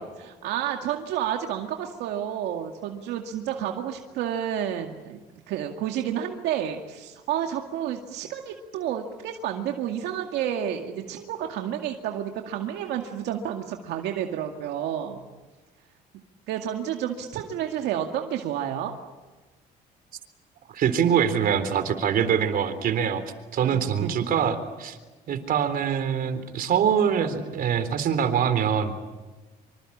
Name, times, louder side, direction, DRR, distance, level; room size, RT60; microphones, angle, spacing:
voice 1, 0.0-5.2 5.5-15.3 16.5-18.9 23.6-24.1, right 10 dB, 85° right, 3 dB, 2.2 m, -30 dB
voice 2, 20.7-23.2 23.5-25.0 25.3-28.9, right 8 dB, 60° right, 10 dB, 3.8 m, -24 dB
26.0 x 25.5 x 8.7 m, 1.2 s
cardioid pair, 110°, 17 cm